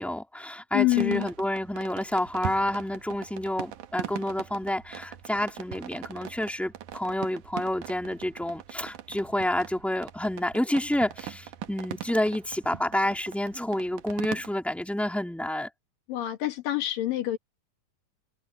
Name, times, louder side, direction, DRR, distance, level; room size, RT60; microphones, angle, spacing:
voice 1, 0.0-15.7, left 1 dB, ahead, 1.6 m, -29 dB
voice 2, 0.7-1.3 16.1-17.4, left 15 dB, 85° left, 3.5 m, -26 dB
sound 1, 0.8-14.5, right 11 dB, 75° right, 2.5 m, -41 dB
omnidirectional pair, 3.8 m